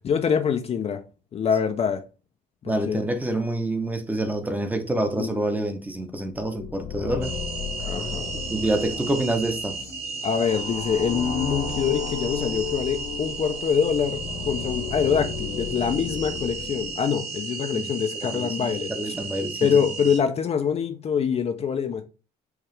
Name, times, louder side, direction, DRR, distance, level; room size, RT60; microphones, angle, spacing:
voice 1, 0.0-1.0 1.3-2.0 2.6-3.0 5.2-5.3 7.8-8.3 10.2-19.1 19.6-22.0, left 7 dB, 35° left, 0.4 m, -25 dB
voice 2, 2.7-7.4 8.5-9.8 17.7-17.9 18.2-19.9, right 1 dB, 10° right, 0.7 m, -27 dB
sound 1, 6.3-17.4, left 6 dB, 75° left, 1.1 m, -34 dB
sound 2, 7.2-20.2, right 5 dB, 65° right, 2.3 m, -34 dB
4.7 x 2.4 x 3.1 m
cardioid pair, 110°, 17 cm